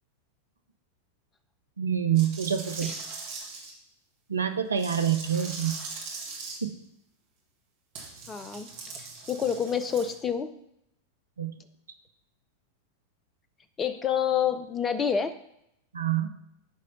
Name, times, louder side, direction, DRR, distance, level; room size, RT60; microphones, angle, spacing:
voice 1, 1.8-2.9 4.3-5.8 6.6-6.7 11.4-11.5 15.9-16.3, right 9 dB, 75° right, 7 dB, 0.6 m, -26 dB
sound 1, 2.1-3.7 4.8-6.6 7.9-10.1, right 4 dB, 50° right, 1.6 m, -40 dB
voice 2, 8.3-8.7 8.9-10.5 13.8-15.3, left 7 dB, 20° left, 11 dB, 0.5 m, -28 dB
8.4 x 3.2 x 5.3 m, 0.78 s
figure-of-eight pair, 90°, 0 cm